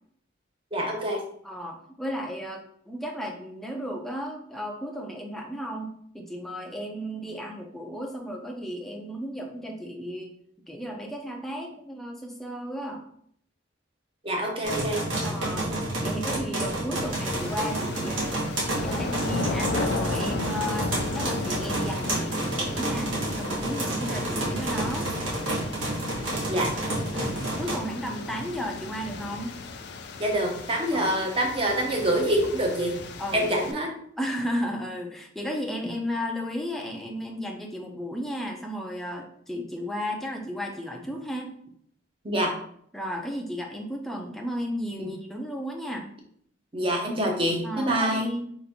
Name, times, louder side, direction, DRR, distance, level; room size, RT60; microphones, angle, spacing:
voice 1, 0.7-1.2 14.2-15.0 26.5-26.7 30.2-32.9 33.3-33.9 42.2-42.5 45.0-45.1 46.7-48.3, right 1 dB, 25° right, 0 dB, 0.8 m, -26 dB
voice 2, 1.4-10.3 10.7-13.1 15.2-18.4 18.7-25.1 27.1-29.5 30.9-31.1 33.2-33.7 34.2-41.5 42.9-46.1 47.6-48.4, equal, ahead, 0 dB, 0.5 m, -34 dB
sound 1, 14.6-27.8, right 1 dB, 70° right, 1.2 m, -29 dB
sound 2, 17.1-33.7, left 3 dB, 55° left, 0.4 m, -35 dB
3.9 x 2.6 x 4.2 m, 0.65 s
head